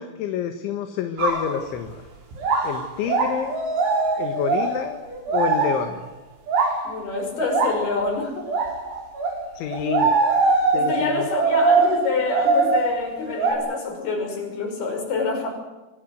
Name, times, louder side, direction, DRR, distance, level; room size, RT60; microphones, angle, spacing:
voice 1, 0.0-2.0 2.6-3.6 4.2-5.0 5.3-6.0 9.6-10.1 10.7-11.3, left 8 dB, 70° left, 7 dB, 3.8 m, -28 dB
sound 1, 1.2-1.5 2.3-5.8 6.5-6.9 7.4-7.9 8.5-9.4 9.7-13.5, right 4 dB, 65° right, 8.0 m, -22 dB
voice 2, 6.8-8.5 10.7-15.5, left 3 dB, 50° left, 3 dB, 7.7 m, -26 dB
26.5 x 21.5 x 8.1 m, 1.1 s
omnidirectional pair, 5.9 m